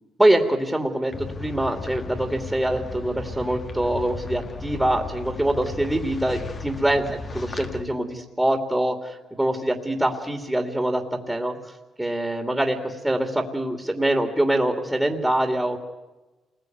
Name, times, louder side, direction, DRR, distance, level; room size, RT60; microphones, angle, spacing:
voice 1, 0.2-7.0 7.3-11.7 12.0-15.8, right 1 dB, 5° right, 5 dB, 3.0 m, -24 dB
sound 1, 1.1-7.8, left 3 dB, 40° left, 2.5 m, -35 dB
28.0 x 20.5 x 9.6 m, 1.2 s
cardioid pair, 90°, 0 cm